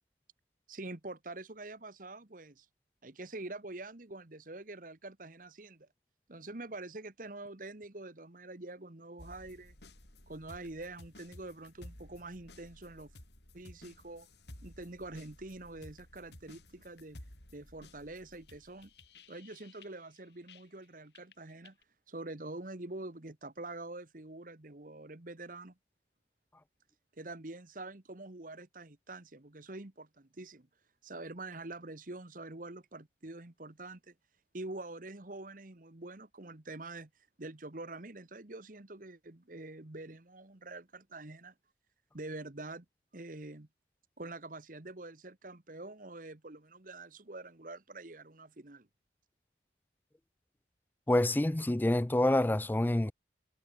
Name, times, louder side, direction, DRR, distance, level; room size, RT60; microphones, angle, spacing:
voice 1, 0.7-2.7 3.0-5.9 6.3-9.7 10.3-13.1 13.5-14.3 14.6-17.2 17.5-18.9 19.3-21.8 22.1-25.7 27.1-30.7 31.0-34.1 34.5-37.1 37.4-41.5 42.1-42.8 43.1-43.7 44.2-48.9, right 2 dB, 50° right, 1.5 m, -45 dB
sound 1, 9.2-20.9 21.2-21.8, left 1 dB, 70° left, 7.7 m, -55 dB
voice 2, 51.1-53.1, left 1 dB, 10° left, 0.4 m, -27 dB
head